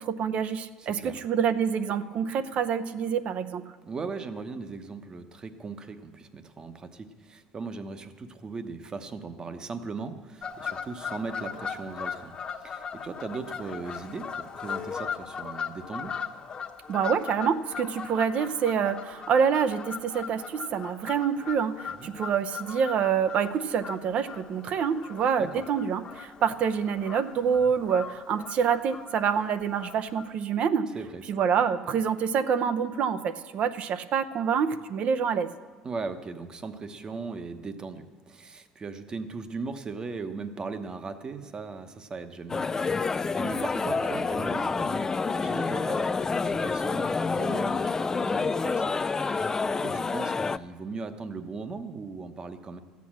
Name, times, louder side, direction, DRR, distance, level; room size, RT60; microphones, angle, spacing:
voice 1, 0.0-3.6 16.9-30.9 31.3-35.5, right 7 dB, 55° right, 11 dB, 0.7 m, -27 dB
voice 2, 0.8-1.2 3.8-12.3 12.6-16.1 22.0-22.1 25.4-25.7 30.9-31.2 35.8-46.1 46.4-49.0 49.3-52.8, right 4 dB, 30° right, 9 dB, 1.0 m, -38 dB
Fowl / Bird vocalization bird call bird song, 10.4-30.3, left 6 dB, 35° left, 1.1 m, -39 dB
sound 1, 42.5-50.6, left 4 dB, 20° left, 0.3 m, -28 dB
13.5 x 8.4 x 7.4 m, 1.4 s
supercardioid pair, 95°, 3 cm